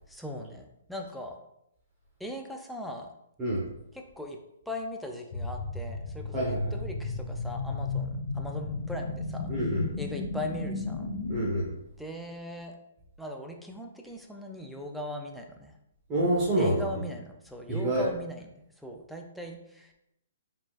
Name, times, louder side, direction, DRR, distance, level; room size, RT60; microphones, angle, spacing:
voice 1, 0.1-1.4 2.2-3.1 3.9-4.4 4.7-8.1 8.3-9.5 10.0-11.1 12.0-12.8 13.2-15.7 16.6-18.5 18.8-19.9, left 1 dB, ahead, 1 dB, 0.5 m, -39 dB
sound 1, 5.3-11.5, left 3 dB, 50° left, 1.4 m, -34 dB
voice 2, 6.3-6.7 9.5-9.8 11.3-11.7 16.1-16.9 17.7-18.1, right 1 dB, 20° right, -6 dB, 1.1 m, -27 dB
4.8 x 3.8 x 2.4 m, 0.82 s
hypercardioid pair, 150°, 0 cm